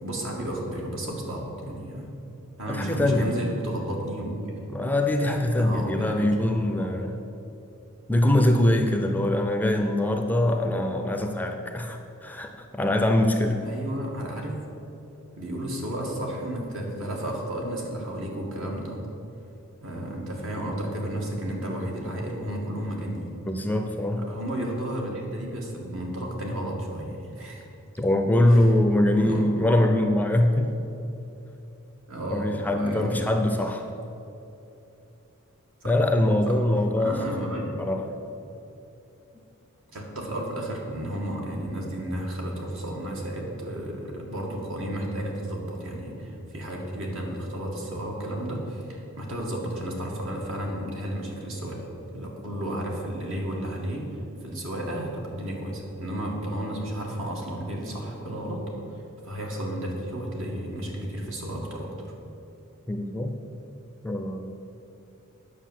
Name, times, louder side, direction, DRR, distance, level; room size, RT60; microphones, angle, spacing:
voice 1, 0.0-2.1 2.6-4.6 5.6-6.3 6.6-6.9 9.6-9.8 13.6-14.6 15.4-19.0 19.8-23.4 24.1-27.6 29.2-29.5 32.1-33.3 35.8-36.0 36.5-36.6 37.0-37.7 39.9-54.1 54.4-58.6 59.2-61.9, right 1 dB, 65° right, -1 dB, 2.2 m, -33 dB
voice 2, 2.7-3.4 4.7-7.2 8.1-13.6 23.5-24.2 28.0-30.7 32.3-33.9 35.8-37.1 37.8-38.0 62.9-63.3 64.0-64.5, left 1 dB, 10° left, 5 dB, 0.6 m, -23 dB
9.3 x 6.6 x 7.5 m, 2.9 s
head